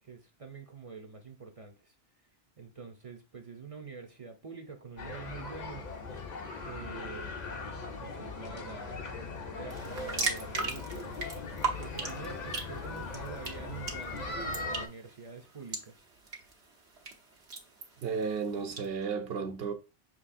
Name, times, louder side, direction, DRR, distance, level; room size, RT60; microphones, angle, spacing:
voice 1, 0.0-1.9 2.6-5.8 6.1-6.2 6.6-7.4 8.0-9.1 9.5-11.5 11.8-16.1, right 5 dB, 40° right, 0.6 m, -46 dB
sound 1, 5.0-14.9, left 3 dB, 45° left, 0.8 m, -39 dB
sound 2, 9.7-18.9, right 4 dB, 90° right, 1.2 m, -39 dB
voice 2, 18.0-19.7, right 5 dB, 70° right, 1.0 m, -33 dB
6.3 x 3.1 x 2.5 m
omnidirectional pair, 1.0 m